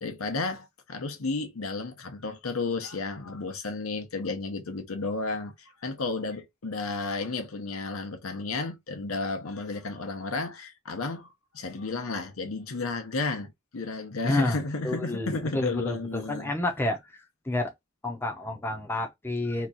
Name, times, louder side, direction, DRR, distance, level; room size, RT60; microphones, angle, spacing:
voice 1, 0.0-16.5, left 3 dB, 85° left, 0.8 m, -32 dB
voice 2, 14.2-17.0 17.4-17.7 18.0-19.7, left 2 dB, 10° left, 0.6 m, -30 dB
3.0 x 2.5 x 3.8 m
head